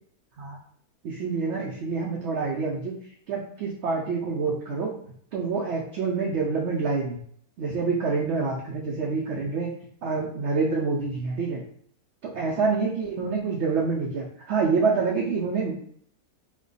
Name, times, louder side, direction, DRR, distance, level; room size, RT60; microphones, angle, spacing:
voice 1, 1.0-3.0 3.3-4.9 5.3-7.2 7.6-9.7 10.0-11.6 12.2-15.7, right 4 dB, 70° right, -2 dB, 0.7 m, -27 dB
3.1 x 2.2 x 3.8 m, 0.63 s
omnidirectional pair, 1.6 m